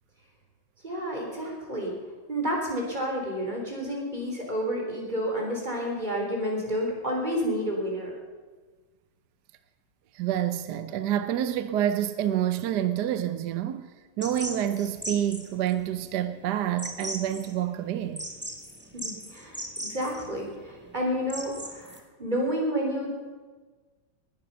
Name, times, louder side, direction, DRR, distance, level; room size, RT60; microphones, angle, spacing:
voice 1, 0.8-1.9 2.3-8.1 18.9-23.3, equal, 20° right, 3.8 m, -30 dB
voice 2, 10.1-18.3, right 11 dB, 70° right, 1.2 m, -28 dB
sound 1, 14.2-22.0, right 1 dB, 5° right, 1.2 m, -39 dB
19.5 x 11.0 x 5.6 m
omnidirectional pair, 2.0 m